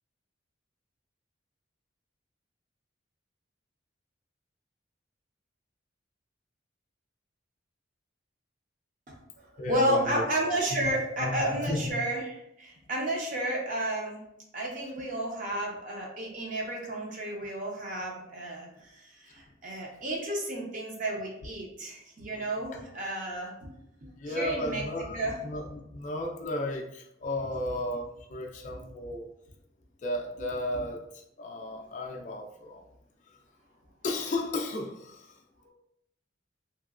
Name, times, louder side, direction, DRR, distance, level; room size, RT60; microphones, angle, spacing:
voice 1, 9.1-14.2 14.5-23.7 24.0-25.4 30.7-30.8, right 1 dB, 40° right, -1 dB, 0.7 m, -32 dB
voice 2, 9.6-10.2 10.7-10.8 11.2-11.9 24.2-29.3 30.0-31.0 31.4-32.8 34.0-35.4, left 1 dB, 40° left, 1 dB, 0.3 m, -34 dB
2.9 x 2.9 x 2.4 m, 0.80 s
head